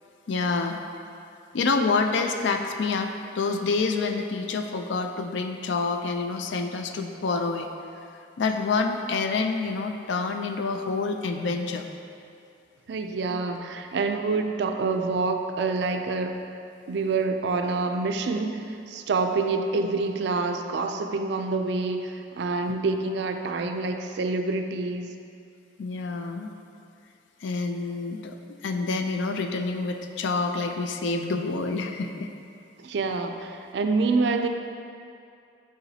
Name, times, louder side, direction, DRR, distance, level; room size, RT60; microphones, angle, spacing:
voice 1, 0.3-0.8 1.5-7.7 8.4-11.8 25.8-26.5 27.4-32.3, left 4 dB, 65° left, 5 dB, 0.4 m, -27 dB
voice 2, 12.9-16.4 16.9-25.1 32.8-34.5, right 3 dB, 60° right, 6 dB, 0.3 m, -27 dB
6.9 x 4.9 x 2.8 m, 2.5 s
head